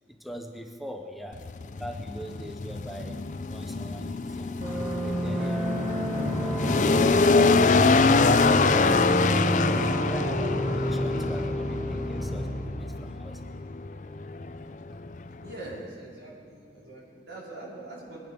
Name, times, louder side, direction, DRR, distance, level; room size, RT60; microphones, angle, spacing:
voice 1, 0.1-1.5 1.8-6.0 6.3-9.1 9.4-13.4, equal, ahead, 4 dB, 0.7 m, -42 dB
sound 1, 1.3-15.8, left 3 dB, 45° left, 0.4 m, -25 dB
sound 2, 4.6-12.6, equal, 45° right, 4.0 m, -30 dB
voice 2, 15.4-18.2, right 2 dB, 85° right, -6 dB, 4.8 m, -42 dB
22.0 x 10.5 x 5.1 m, 2.2 s
head